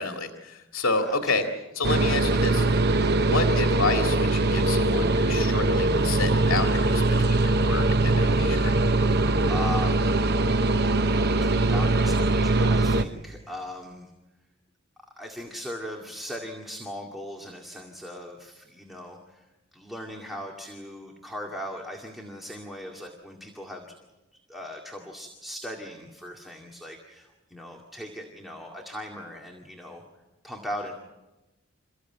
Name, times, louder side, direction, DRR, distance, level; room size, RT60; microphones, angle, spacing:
voice 1, 0.0-1.4 1.8-2.7 3.1-8.8, left 3 dB, 80° left, 4 dB, 2.1 m, -29 dB
sound 1, 1.8-13.0, right 2 dB, 50° right, 0.9 m, -22 dB
voice 2, 9.1-10.3 11.4-14.1 15.2-19.5 19.7-23.9 24.5-30.0 30.4-30.9, left 1 dB, ahead, 1 dB, 2.1 m, -38 dB
28.5 x 15.5 x 9.1 m, 1.1 s
head